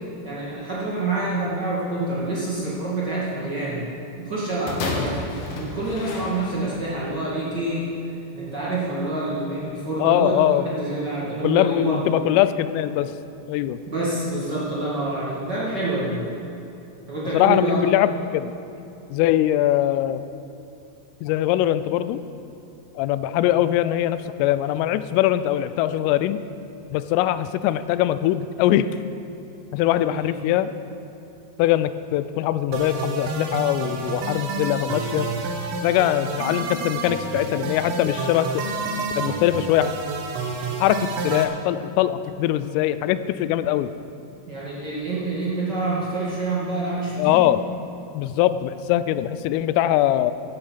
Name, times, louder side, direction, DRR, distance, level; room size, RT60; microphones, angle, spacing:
voice 1, 0.2-3.9 4.2-5.2 5.5-7.8 8.3-12.2 13.9-16.3 17.1-17.8 29.9-30.4 44.5-47.4, right 2 dB, 45° right, -8 dB, 1.4 m, -27 dB
sound 1, 4.7-6.9 7.7-7.8, left 2 dB, 65° left, 2.1 m, -31 dB
voice 2, 10.0-10.7 11.4-13.1 13.5-13.8 17.3-18.5 19.1-20.2 21.2-22.2 23.0-26.4 26.9-28.9 29.7-30.7 31.6-35.3 35.8-38.6 39.2-40.0 40.8-43.9 47.2-47.6 48.1-50.3, left 13 dB, 85° left, 13 dB, 3.1 m, -22 dB
sound 2, 32.7-41.4, right 3 dB, 80° right, 3.9 m, -29 dB
16.0 x 8.8 x 5.8 m, 2.8 s
omnidirectional pair, 5.8 m